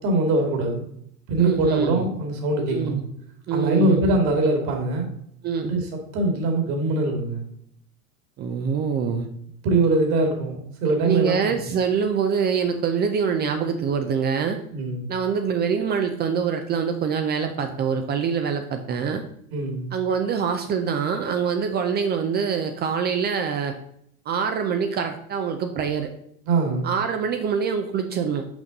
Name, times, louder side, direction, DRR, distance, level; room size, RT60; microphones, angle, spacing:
voice 1, 0.0-0.8 1.3-3.0 3.5-5.1 5.6-5.8 6.1-7.5 9.6-11.7 14.7-15.1 19.5-19.9 26.5-26.9, right 2 dB, 50° right, 3 dB, 2.1 m, -22 dB
voice 2, 1.4-2.1 2.7-3.0 3.5-4.0 5.4-5.7 8.4-9.3 11.0-14.6 15.1-19.2 19.9-23.7 24.3-26.1 26.8-28.5, right 6 dB, 25° right, 6 dB, 0.4 m, -25 dB
6.1 x 5.1 x 3.9 m, 0.70 s
hypercardioid pair, 105°, 45 cm